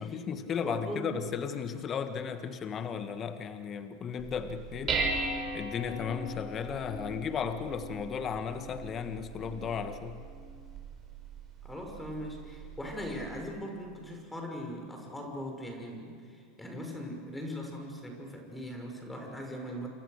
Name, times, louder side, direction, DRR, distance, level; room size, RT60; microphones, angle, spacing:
voice 1, 0.0-5.0 5.5-10.2, left 7 dB, 35° left, 9 dB, 1.7 m, -35 dB
voice 2, 0.6-1.1 11.6-19.9, equal, 10° left, 2 dB, 6.0 m, -40 dB
Dishes pots and pans, 4.2-13.4, right 3 dB, 30° right, 5.9 m, -39 dB
28.0 x 27.5 x 6.7 m, 2.2 s
hypercardioid pair, 85°, 0 cm